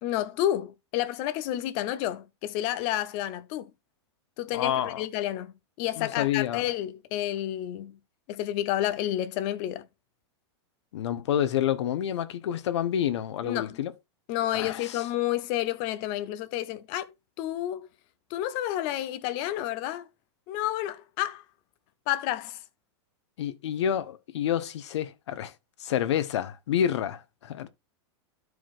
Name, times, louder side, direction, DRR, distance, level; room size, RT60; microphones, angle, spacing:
voice 1, 0.0-3.7 4.4-8.0 8.3-9.9 13.4-13.8 14.3-17.9 18.3-20.1 20.5-21.4 22.1-22.6, left 13 dB, 35° left, 0.6 m, -30 dB
voice 2, 4.5-5.0 6.0-6.6 10.9-13.9 14.5-15.0 23.4-25.5 25.8-27.7, left 10 dB, 75° left, 0.9 m, -28 dB
12.5 x 4.7 x 2.4 m
supercardioid pair, 170°, 15 cm